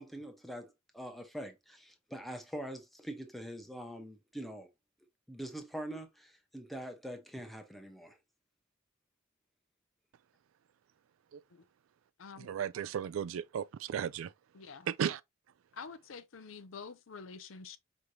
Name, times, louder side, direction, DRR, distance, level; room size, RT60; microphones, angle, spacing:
voice 1, 0.0-4.7 5.3-8.2, right 1 dB, ahead, 0.8 m, -44 dB
voice 2, 12.4-14.3 14.9-15.2, right 8 dB, 75° right, 0.3 m, -35 dB
voice 3, 14.5-14.9 15.7-17.8, left 5 dB, 70° left, 0.6 m, -47 dB
5.0 x 3.2 x 2.7 m
head